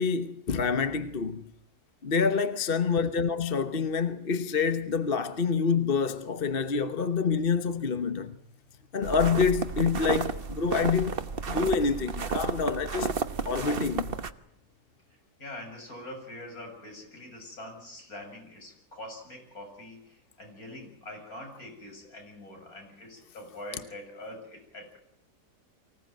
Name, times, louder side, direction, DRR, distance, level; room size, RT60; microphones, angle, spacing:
voice 1, 0.0-1.5 2.0-8.3 8.9-11.1 11.5-13.1 13.5-14.1, left 5 dB, 40° left, 1.1 m, -27 dB
sound 1, 9.0-14.3, right 5 dB, 40° right, 1.2 m, -32 dB
voice 2, 15.4-25.0, left 1 dB, 55° left, 8.0 m, -44 dB
24.5 x 17.5 x 9.1 m
omnidirectional pair, 1.8 m